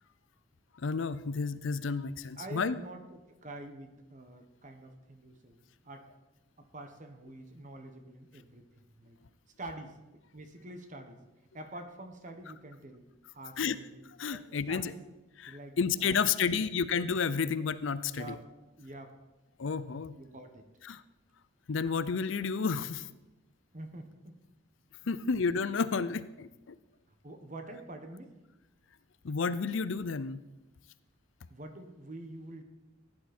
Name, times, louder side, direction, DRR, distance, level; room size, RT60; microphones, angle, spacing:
voice 1, 0.8-2.8 13.6-13.8 14.2-14.9 15.4-18.4 19.6-20.1 20.9-21.0 21.7-23.1 25.1-26.7 29.2-30.4, left 5 dB, 65° left, 15 dB, 0.5 m, -31 dB
voice 2, 2.4-6.1 6.6-9.2 9.6-11.2 11.5-13.1 13.3-13.9 14.3-15.0 15.5-16.6 18.1-18.4 18.7-19.1 20.2-20.7 23.7-24.4 27.2-28.4 31.5-32.6, right 1 dB, 40° right, 7 dB, 1.3 m, -46 dB
16.0 x 10.5 x 4.3 m, 1.0 s
head